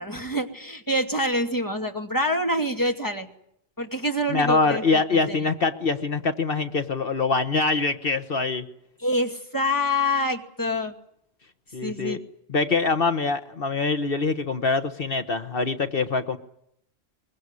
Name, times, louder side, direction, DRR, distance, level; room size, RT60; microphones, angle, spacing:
voice 1, 0.0-3.3 3.8-5.5 9.0-10.9 11.8-12.2, left 1 dB, 20° left, 3 dB, 2.5 m, -26 dB
voice 2, 4.3-8.6 11.7-12.2 12.5-16.4, left 4 dB, 60° left, 9 dB, 1.4 m, -24 dB
23.5 x 22.0 x 9.8 m, 0.74 s
omnidirectional pair, 1.1 m